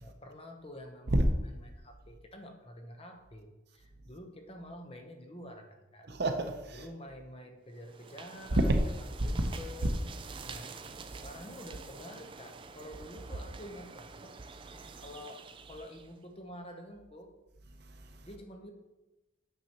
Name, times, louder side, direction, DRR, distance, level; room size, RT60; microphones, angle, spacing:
voice 1, 0.0-6.1 6.8-8.7 9.2-9.9 10.4-10.7 11.1-14.3 15.0-17.3 18.2-18.7, left 1 dB, 30° left, 0.8 m, -48 dB
voice 2, 6.1-6.9 8.6-8.8 9.2-9.3 10.3-10.5 14.8-15.0 17.7-18.3, right 1 dB, 50° right, 0.7 m, -30 dB
sound 1, 7.8-16.2, right 4 dB, 25° right, 0.3 m, -47 dB
9.1 x 7.0 x 2.9 m
head